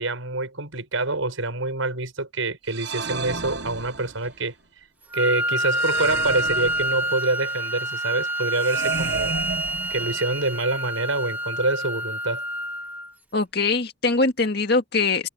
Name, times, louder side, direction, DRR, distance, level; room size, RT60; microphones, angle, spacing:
voice 1, 0.0-4.5 5.1-9.4 9.9-12.4, right 2 dB, 80° right, 5.9 m, -26 dB
sound 1, 2.7-4.4 5.7-7.3 8.6-10.4, right 4 dB, 55° right, 1.2 m, -32 dB
Wind instrument woodwind instrument, 5.1-13.1, right 1 dB, 10° right, 2.2 m, -27 dB
voice 2, 13.3-15.3, left 3 dB, 50° left, 2.1 m, -22 dB
head